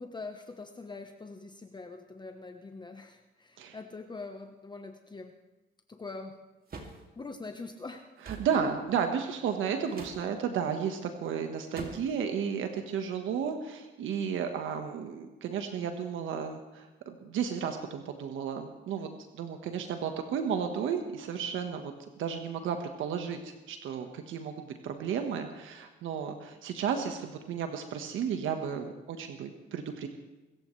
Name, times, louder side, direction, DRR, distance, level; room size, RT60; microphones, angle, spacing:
voice 1, 0.0-5.4 5.9-6.4 7.2-8.1, left 3 dB, 20° left, 5 dB, 1.0 m, -43 dB
sound 1, 6.7-7.0 8.2-8.5 9.9-10.2 11.8-12.2, right 4 dB, 50° right, 2.6 m, -42 dB
voice 2, 8.4-19.1 19.3-30.1, right 7 dB, 80° right, 5 dB, 1.4 m, -33 dB
25.5 x 14.5 x 3.3 m, 1.1 s
cardioid pair, 90°, 20 cm